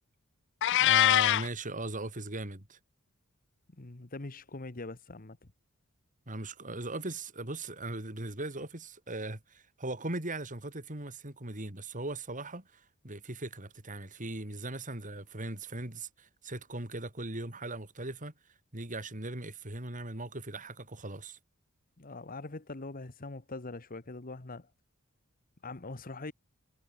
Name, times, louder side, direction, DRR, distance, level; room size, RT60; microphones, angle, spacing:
Meow, 0.6-1.5, left 13 dB, 55° left, 0.4 m, -23 dB
voice 1, 0.7-2.8 6.3-18.3 18.7-21.4, right 2 dB, 35° right, 3.9 m, -39 dB
voice 2, 3.8-5.4 22.0-24.7 25.6-26.3, left 2 dB, 40° left, 1.3 m, -42 dB
head